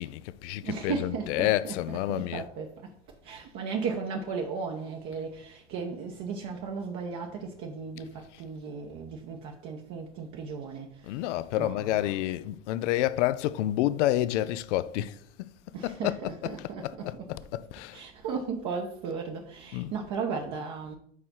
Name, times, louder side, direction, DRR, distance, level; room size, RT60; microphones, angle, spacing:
voice 1, 0.0-2.4 11.0-15.2 15.8-18.0 19.7-20.0, left 14 dB, 70° left, 0.5 m, -29 dB
voice 2, 0.6-2.9 3.2-12.2 15.7-17.3 17.9-20.9, right 5 dB, 50° right, 1.0 m, -36 dB
4.8 x 4.3 x 5.6 m
hypercardioid pair, 85°, 37 cm